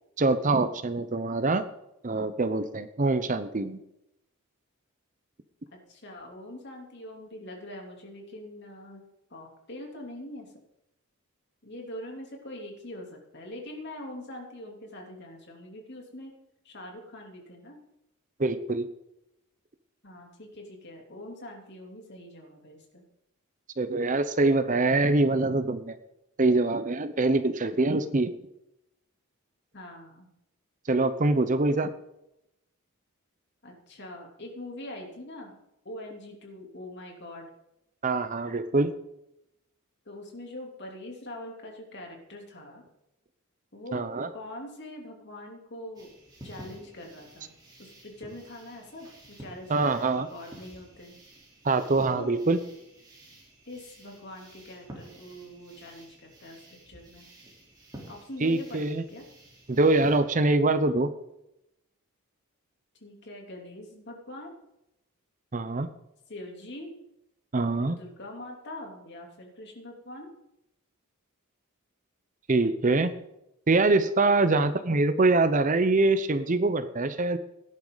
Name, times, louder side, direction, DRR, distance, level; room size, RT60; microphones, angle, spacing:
voice 1, 0.2-1.6 2.0-3.8 18.4-18.9 23.8-26.0 26.4-28.3 30.9-31.9 38.0-38.9 43.9-44.3 49.7-50.3 51.6-52.6 58.4-59.0 59.7-61.1 65.5-65.9 67.5-68.0 72.5-73.1 73.7-77.4, right 2 dB, 35° right, 12 dB, 0.6 m, -24 dB
voice 2, 5.7-9.0 9.3-10.5 11.6-16.3 16.6-17.8 20.0-23.0 29.7-30.3 33.6-35.6 35.8-37.5 40.0-42.8 43.7-44.1 44.3-46.1 46.4-47.5 47.8-51.2 52.1-52.3 53.7-57.3 58.1-59.2 63.0-64.5 66.3-66.9 67.9-70.3 74.5-74.8, left 1 dB, 50° left, 1 dB, 3.1 m, -43 dB
sound 1, 46.0-60.2, right 1 dB, 20° right, 3.5 m, -50 dB
17.5 x 10.5 x 4.0 m, 0.85 s
head